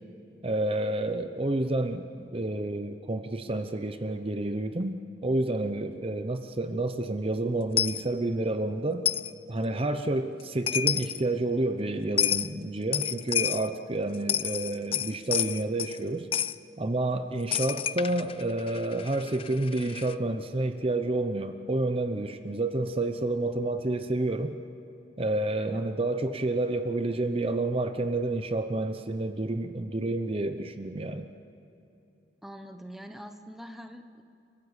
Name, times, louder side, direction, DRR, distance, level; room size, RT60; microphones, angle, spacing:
voice 1, 0.4-9.1 9.5-16.3 16.8-24.6 25.2-31.3, right 2 dB, 30° right, 8 dB, 0.8 m, -29 dB
Coin (dropping), 7.8-8.0 9.1-9.3 10.4-10.5 10.7-11.2 12.2-12.5 12.9-13.7 14.1-16.0 16.3-16.6 17.5-20.2, left 10 dB, 30° left, 0.4 m, -29 dB
voice 2, 32.4-34.2, equal, ahead, 6 dB, 1.1 m, -44 dB
30.0 x 15.0 x 8.3 m, 2.8 s
head